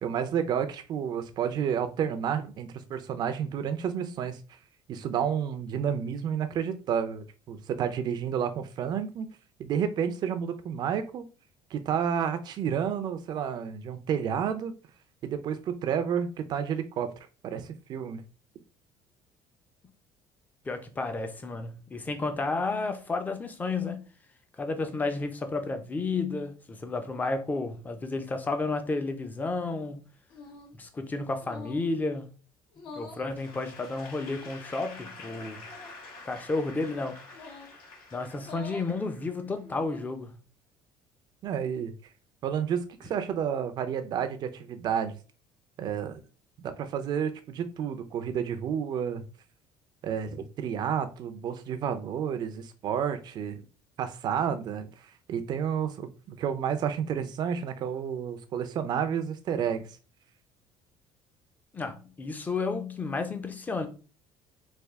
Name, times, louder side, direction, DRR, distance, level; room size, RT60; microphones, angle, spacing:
voice 1, 0.0-4.4 4.9-9.3 9.6-11.3 11.7-14.7 15.2-17.1 17.4-18.2 41.4-41.9 42.4-45.2 45.8-46.2 46.6-49.2 50.0-53.7 54.0-59.9, right 8 dB, 45° right, 0.5 m, -30 dB
voice 2, 20.6-24.0 24.6-30.0 30.7-32.3 32.9-35.7 36.2-37.2 38.1-40.4 61.7-63.9, left 3 dB, 15° left, 0.6 m, -32 dB
sound 1, 30.3-30.8 31.4-31.9 32.7-33.3 34.2-34.8 35.6-36.0 37.3-37.8 38.4-38.9 39.6-40.2, left 3 dB, 60° left, 0.9 m, -46 dB
Applause / Crowd, 33.3-39.7, left 3 dB, 85° left, 1.9 m, -47 dB
3.4 x 2.4 x 3.5 m
cardioid pair, 135°, 10 cm